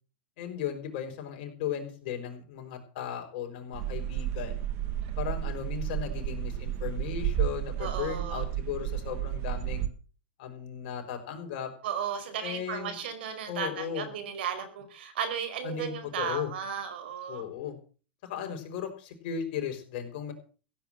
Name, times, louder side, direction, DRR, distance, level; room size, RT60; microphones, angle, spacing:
voice 1, 0.4-4.6 5.2-9.9 10.4-11.7 12.4-13.0 13.5-14.1 15.6-16.5 17.3-17.8 18.2-20.3, left 8 dB, 55° left, 5 dB, 5.4 m, -36 dB
sound 1, 3.7-9.9, right 12 dB, 45° right, 1.8 m, -32 dB
voice 2, 7.8-8.4 11.8-17.5, right 7 dB, 70° right, 9 dB, 5.0 m, -35 dB
16.0 x 9.1 x 7.5 m, 0.39 s
hypercardioid pair, 125°, 6 cm